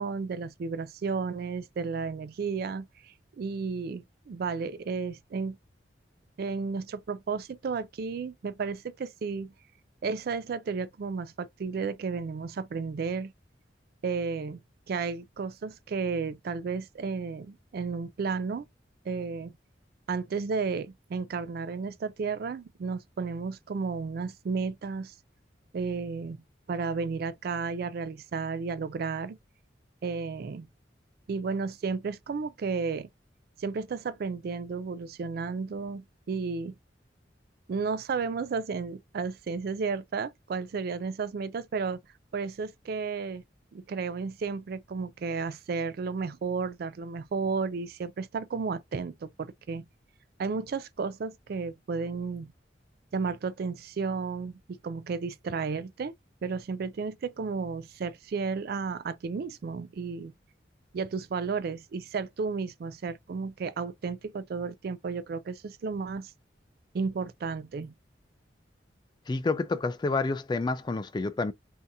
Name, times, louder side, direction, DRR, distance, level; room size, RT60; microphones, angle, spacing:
voice 1, 0.0-2.9 3.4-5.6 6.4-9.5 10.0-13.3 14.0-14.6 14.9-18.7 19.1-19.5 20.1-25.1 25.7-26.4 26.7-29.4 30.0-30.7 31.3-33.1 33.6-36.7 37.7-42.0 42.3-43.4 43.7-49.8 50.4-52.5 53.1-56.1 56.4-60.3 60.9-66.3 66.9-67.9, right 4 dB, 55° right, 0.3 m, -33 dB
voice 2, 69.3-71.5, left 3 dB, 25° left, 0.3 m, -29 dB
3.5 x 2.7 x 2.6 m
head